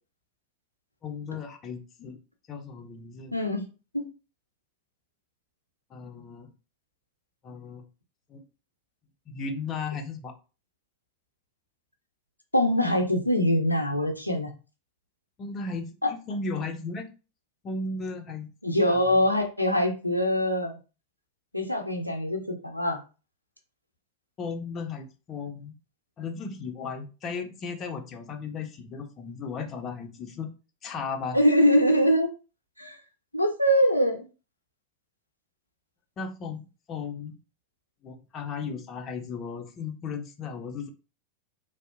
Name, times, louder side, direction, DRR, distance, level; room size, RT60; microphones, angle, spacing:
voice 1, 1.0-2.2 2.5-3.3 5.9-6.5 7.4-7.8 8.3-8.4 9.3-10.3 15.4-17.1 17.6-18.5 18.9-19.1 24.4-25.8 26.2-30.5 30.8-31.4 36.2-37.3 38.0-40.9, left 4 dB, 30° left, 5 dB, 0.4 m, -35 dB
voice 2, 3.3-3.6 3.9-4.0 12.5-14.5 16.0-16.1 18.6-20.8 21.5-23.0 31.3-32.3 32.8-33.0 33.3-34.3, equal, 90° left, 2 dB, 0.4 m, -23 dB
2.6 x 2.0 x 2.4 m, 0.32 s
figure-of-eight pair, 90°, 0 cm